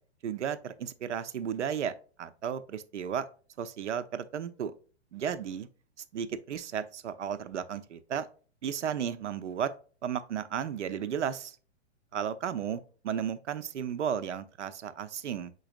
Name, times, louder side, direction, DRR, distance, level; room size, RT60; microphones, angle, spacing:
voice 1, 0.2-3.2 3.6-4.7 5.1-5.7 6.1-8.3 8.6-9.7 10.0-11.6 12.1-15.5, right 8 dB, 85° right, 0.7 m, -34 dB
5.2 x 4.0 x 2.5 m
hypercardioid pair, 125°, 34 cm